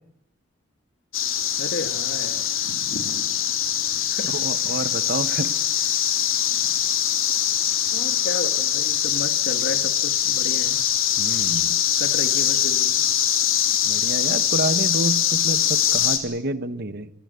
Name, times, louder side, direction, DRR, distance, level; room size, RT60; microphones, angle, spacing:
sound 1, 1.1-16.2, left 10 dB, 75° left, 3.4 m, -22 dB
voice 1, 1.6-2.5 4.1-4.3 6.5-6.6 7.9-10.8 12.0-13.0, left 2 dB, 55° left, 8 dB, 1.9 m, -33 dB
voice 2, 4.3-5.5 11.2-11.8 13.8-17.1, right 2 dB, 50° right, 13 dB, 1.1 m, -28 dB
26.0 x 20.0 x 8.2 m, 0.83 s
head